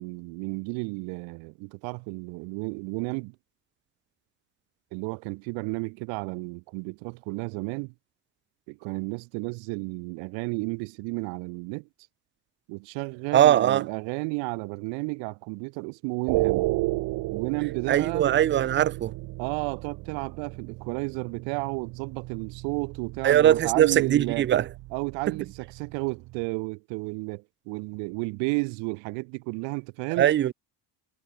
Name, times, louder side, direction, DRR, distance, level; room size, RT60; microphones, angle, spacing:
voice 1, 0.0-3.3 4.9-7.9 8.7-11.9 12.7-16.7 17.3-18.3 19.4-24.5 24.9-30.3, right 33 dB, 90° right, 1.5 m, -32 dB
voice 2, 13.3-13.8 17.9-19.1 23.2-24.7 30.2-30.5, right 11 dB, 25° right, 0.5 m, -20 dB
sound 1, 16.3-26.5, right 21 dB, 65° right, 1.3 m, -34 dB
cardioid pair, 145°, 44 cm